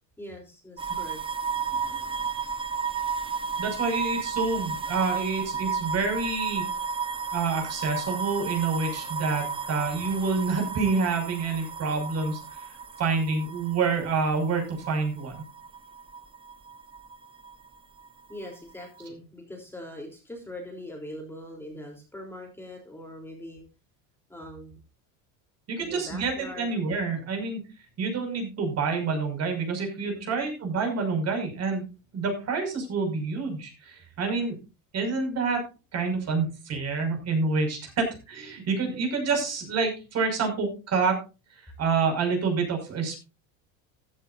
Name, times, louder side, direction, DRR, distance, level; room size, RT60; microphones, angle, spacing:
voice 1, 0.2-1.2 1.5-1.6 18.3-23.6 24.3-24.8 25.8-26.8 30.1-30.5, left 1 dB, 5° left, 1 dB, 3.5 m, -42 dB
sound 1, 0.8-17.7 18.0-19.0, right 5 dB, 15° right, 0.8 m, -33 dB
voice 2, 3.6-6.6 7.3-12.6 13.0-15.4 25.7-27.6 28.0-31.8 32.1-34.6 34.9-35.6 35.9-41.2 41.6-43.2, right 4 dB, 40° right, 4 dB, 6.0 m, -27 dB
15.0 x 13.0 x 2.6 m, 0.30 s
cardioid pair, 135°, 40 cm